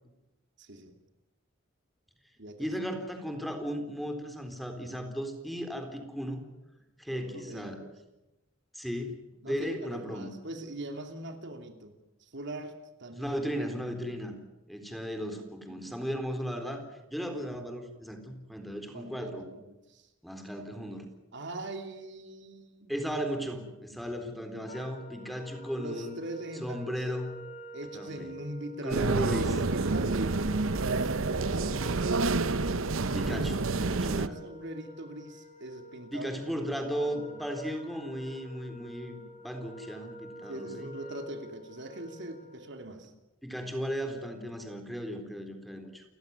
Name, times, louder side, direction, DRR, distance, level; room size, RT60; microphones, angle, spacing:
voice 1, 0.6-1.0 2.4-2.7 7.1-7.9 9.4-12.7 13.0-13.4 15.3-15.9 16.7-16.8 18.9-20.1 21.3-22.9 25.7-27.1 27.7-31.1 31.5-32.5 33.9-36.6 36.9-37.4 40.5-43.1 44.1-44.5, right 1 dB, 60° right, 6 dB, 2.9 m, -42 dB
voice 2, 2.6-6.4 7.0-7.9 8.7-9.1 9.5-10.3 13.2-14.3 14.7-16.8 17.1-19.4 20.2-21.1 22.9-26.1 26.6-27.4 27.9-28.3 28.8-29.5 33.1-34.4 36.1-40.9 43.4-46.0, equal, ahead, 6 dB, 3.9 m, -36 dB
Wind instrument woodwind instrument, 24.7-42.8, right 1 dB, 40° left, 3.6 m, -48 dB
sound 1, 28.9-34.3, right 3 dB, 85° right, 0.9 m, -28 dB
30.0 x 16.0 x 9.6 m, 1.0 s
head